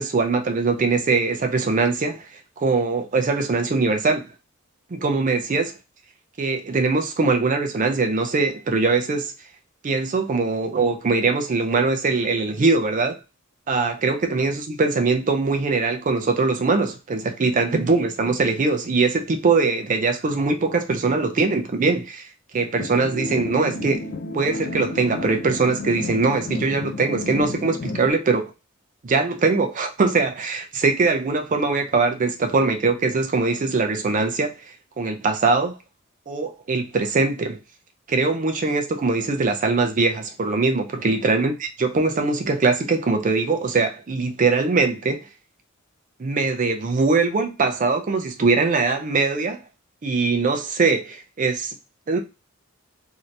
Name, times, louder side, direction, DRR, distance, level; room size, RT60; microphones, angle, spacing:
voice 1, 0.0-4.2 4.9-5.7 6.4-9.3 9.8-13.2 13.7-22.3 22.5-24.1 24.3-28.5 29.0-35.8 36.3-37.6 38.1-45.3 46.2-49.6 50.0-51.7 52.1-52.2, right 3 dB, 40° right, 0.4 m, -22 dB
sound 1, 22.8-28.1, left 2 dB, 45° left, 0.4 m, -31 dB
2.8 x 2.6 x 3.1 m
head